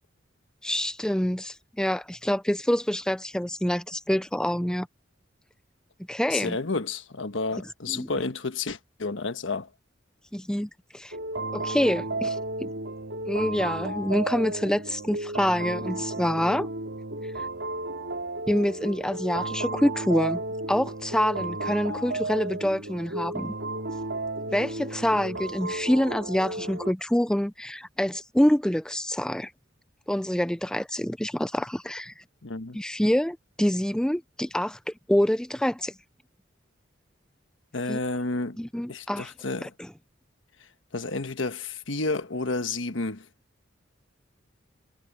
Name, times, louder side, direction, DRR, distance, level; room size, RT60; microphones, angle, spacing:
voice 1, 0.6-4.9 6.1-6.6 7.9-8.1 10.3-11.2 11.5-12.7 13.3-16.7 18.5-20.4 20.7-23.5 24.5-29.5 30.1-32.2 32.7-35.9 37.9-38.0 38.6-39.3 39.6-39.9, equal, 5° left, 0.5 m, -26 dB
voice 2, 6.3-9.7 32.4-32.8 37.7-38.6 38.9-39.7 40.9-43.3, left 3 dB, 75° left, 1.3 m, -31 dB
sound 1, 11.1-26.9, right 2 dB, 70° right, 4.8 m, -33 dB
head